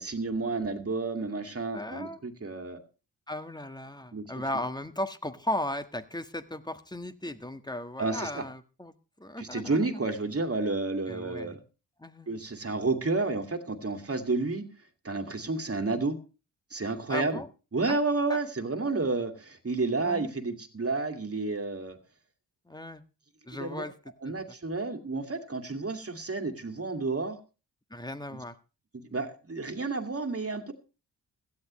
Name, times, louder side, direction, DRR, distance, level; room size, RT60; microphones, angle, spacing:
voice 1, 0.0-2.8 4.1-4.2 8.0-8.4 9.4-11.6 12.3-14.7 15.0-16.2 16.7-17.4 17.7-22.0 23.6-23.8 24.2-27.4 28.3-28.4 28.9-30.7, right 3 dB, 30° right, 7 dB, 2.3 m, -31 dB
voice 2, 1.7-2.2 3.3-10.0 11.1-11.6 12.0-12.3 17.1-17.5 17.9-18.0 18.3-18.4 20.0-20.3 22.7-23.0 23.5-23.9 24.3-24.4 27.9-28.5, left 1 dB, 10° left, 10 dB, 1.5 m, -36 dB
16.5 x 12.5 x 3.2 m, 0.32 s
hypercardioid pair, 40°, 44 cm